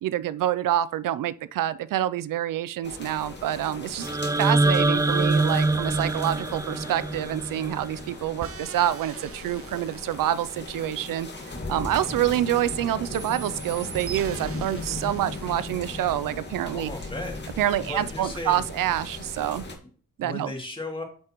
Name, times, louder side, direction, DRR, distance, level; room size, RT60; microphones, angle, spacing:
voice 1, 0.0-4.1 4.4-16.9 17.6-19.7 20.2-20.5, right 12 dB, 90° right, 0.5 m, -27 dB
sound 1, 2.8-19.8, left 2 dB, 35° left, 2.0 m, -38 dB
sound 2, 4.0-8.1, right 2 dB, 10° right, 0.3 m, -24 dB
sound 3, 8.4-12.7 13.1-15.8, right 7 dB, 45° right, 0.7 m, -43 dB
voice 2, 16.7-17.4 17.9-18.6 20.2-21.0, left 2 dB, 15° left, 2.6 m, -35 dB
8.8 x 6.5 x 3.0 m
cardioid pair, 95°, 32 cm